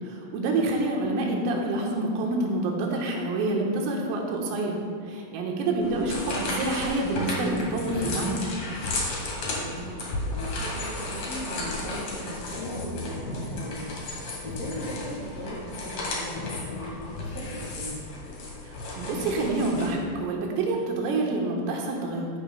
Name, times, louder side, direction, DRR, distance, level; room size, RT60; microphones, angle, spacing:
voice 1, 0.0-4.8 5.1-8.4 18.7-22.4, right 2 dB, 85° right, 0 dB, 3.8 m, -27 dB
sound 1, 5.8-19.9, left 2 dB, 55° left, 2.0 m, -33 dB
voice 2, 9.5-13.9 14.4-18.0, left 1 dB, 75° left, -7 dB, 1.4 m, -38 dB
14.5 x 10.0 x 2.2 m, 2.5 s
omnidirectional pair, 5.8 m